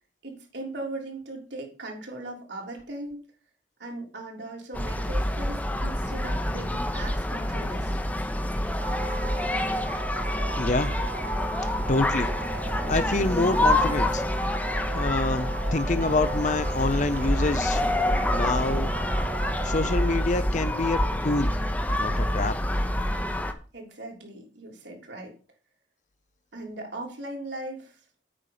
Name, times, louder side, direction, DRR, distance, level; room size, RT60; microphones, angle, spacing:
voice 1, 0.2-3.2 3.8-8.0 23.7-25.3 26.5-28.0, right 2 dB, 75° right, 3.5 m, -38 dB
sound 1, 4.7-23.5, left 1 dB, 10° left, 0.8 m, -27 dB
sound 2, 8.8-20.2, right 6 dB, 45° right, 0.4 m, -39 dB
voice 2, 10.6-10.9 11.9-12.3 12.7-14.2 14.9-17.8 18.3-18.9 19.6-21.0 21.2-21.5 22.0-22.5, left 3 dB, 40° left, 0.6 m, -26 dB
8.8 x 5.4 x 6.7 m
head